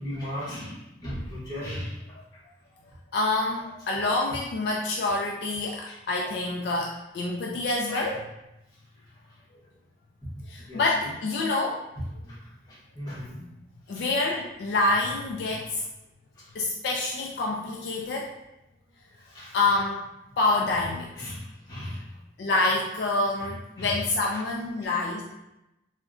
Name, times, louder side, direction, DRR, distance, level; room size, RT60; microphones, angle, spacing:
voice 1, 0.0-2.4 5.6-6.0 6.2-6.3 7.9-8.2 9.0-9.7 10.2-11.2 12.0-13.4 13.9-14.1 16.3-16.6 19.1-19.8 21.2-22.2 23.3-24.0 24.3-24.4 24.8-24.9, equal, 20° left, -9 dB, 1.0 m, -38 dB
voice 2, 3.1-8.2 10.5-11.8 13.9-15.8 16.5-18.3 19.5-20.0 20.4-21.3 22.4-25.2, left 2 dB, 60° left, -1 dB, 0.3 m, -27 dB
3.6 x 2.1 x 2.4 m, 0.92 s
head